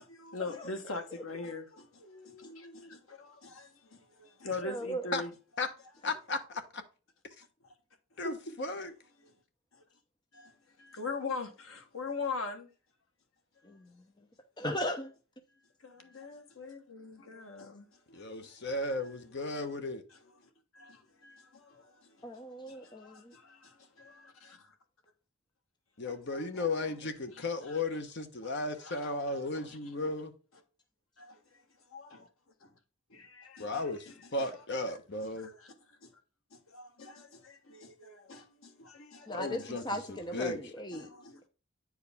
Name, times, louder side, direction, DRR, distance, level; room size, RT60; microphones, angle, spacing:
voice 1, 0.0-5.3 7.6-7.7 8.1-8.7 9.2-9.3 9.7-9.8 10.3-12.7 15.8-19.1 20.1-24.6 26.0-27.8 28.4-30.1 31.2-32.3 32.6-32.8 33.1-36.2 36.5-40.5 40.9-41.5, left 4 dB, 70° left, 1.3 m, -44 dB
voice 2, 4.6-5.1 13.6-14.0 14.6-15.1 22.2-23.3 39.3-41.1, equal, 20° left, 0.8 m, -37 dB
voice 3, 6.0-6.8 8.2-8.9 18.1-20.0 26.0-30.3 33.6-35.5 39.3-40.6, left 2 dB, 55° left, 1.1 m, -35 dB
9.2 x 4.9 x 3.5 m
head